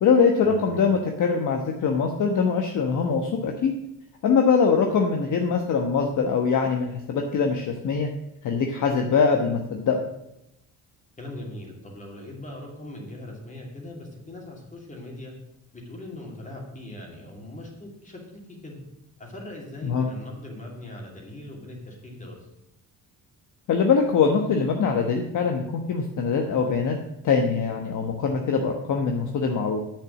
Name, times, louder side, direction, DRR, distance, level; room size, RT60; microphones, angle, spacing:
voice 1, 0.0-3.7 4.2-8.1 8.4-10.0 19.8-20.1 23.7-26.9 27.2-29.8, left 5 dB, 60° left, 3 dB, 1.1 m, -23 dB
voice 2, 11.2-15.3 15.7-18.2 18.6-18.8 19.2-22.4, left 1 dB, 20° left, -1 dB, 2.5 m, -40 dB
9.0 x 6.8 x 7.3 m, 0.84 s
cardioid pair, 160°, 35 cm